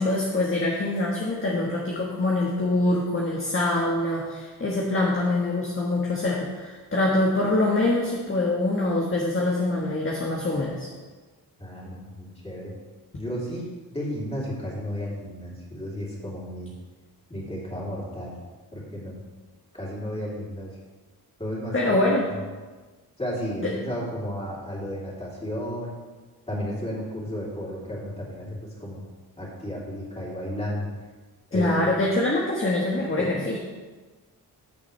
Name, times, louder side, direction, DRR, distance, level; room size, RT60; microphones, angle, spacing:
voice 1, 0.0-10.9 21.7-22.3 23.6-23.7 31.5-33.6, left 2 dB, 30° left, -3 dB, 1.5 m, -24 dB
voice 2, 11.6-12.7 13.1-13.7 13.9-16.7 17.3-18.3 18.7-19.2 19.7-20.7 21.4-21.7 22.0-22.1 23.2-25.9 26.5-29.0 29.4-30.9 31.5-31.9 33.2-33.4, equal, 15° left, -5 dB, 3.3 m, -33 dB
14.0 x 7.2 x 3.4 m, 1.3 s
wide cardioid pair, 100°, 40 cm